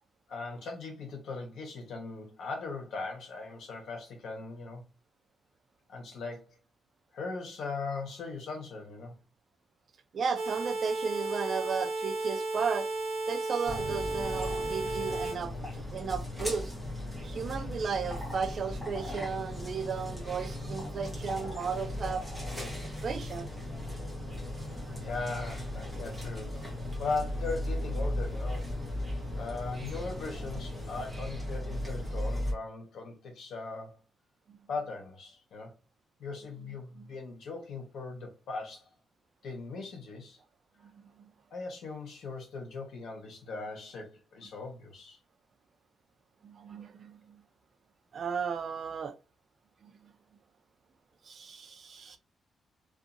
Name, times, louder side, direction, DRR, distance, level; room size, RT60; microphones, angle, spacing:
voice 1, 0.3-4.8 5.9-6.6 7.1-9.1 24.3-24.5 25.0-28.7 29.4-34.0 34.7-35.7 36.2-38.9 39.4-40.4 41.5-45.2, left 3 dB, 65° left, 1.0 m, -39 dB
voice 2, 10.1-12.9 13.3-16.7 17.2-22.2 22.8-23.5 37.0-37.1 40.9-41.3 46.4-47.4 48.1-49.1 49.8-49.9 51.2-52.2, right 6 dB, 45° right, 0.4 m, -35 dB
sound 1, 10.3-15.3, right 2 dB, 65° right, 0.9 m, -34 dB
sound 2, 13.7-32.5, left 1 dB, 5° right, 1.1 m, -37 dB
2.6 x 2.4 x 2.5 m
cardioid pair, 155°, 0 cm